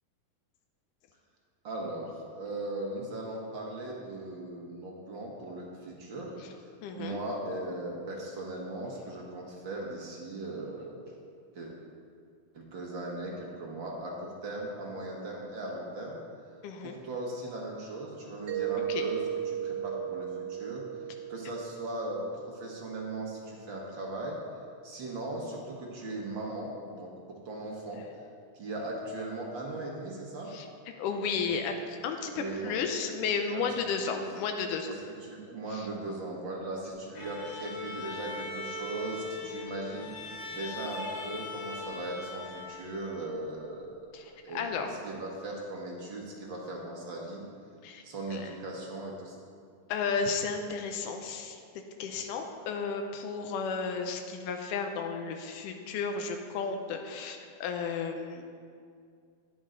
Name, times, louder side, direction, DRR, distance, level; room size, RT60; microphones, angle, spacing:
voice 1, 1.6-6.3 6.6-6.7 7.0-11.0 11.5-11.7 12.5-16.2 16.8-19.2 19.4-20.8 21.3-24.4 24.8-27.1 27.4-28.0 28.5-30.5 32.3-32.8 33.5-33.6 34.1-34.2 34.8-34.9 35.2-40.1 40.5-44.0 44.4-47.4 48.0-49.3, right 2 dB, 55° right, -2 dB, 1.5 m, -38 dB
voice 2, 6.8-7.2 16.6-17.0 18.9-19.0 30.5-30.7 31.0-34.9 35.7-35.9 44.1-44.9 47.8-48.0 48.3-48.5 49.9-51.6 52.0-58.4, left 5 dB, 90° left, 4 dB, 2.2 m, -33 dB
Mallet percussion, 18.5-23.1, right 10 dB, 80° right, 1.4 m, -36 dB
Bowed string instrument, 37.1-43.4, left 3 dB, 55° left, 1.4 m, -40 dB
10.5 x 10.5 x 3.9 m, 2.2 s
omnidirectional pair, 3.6 m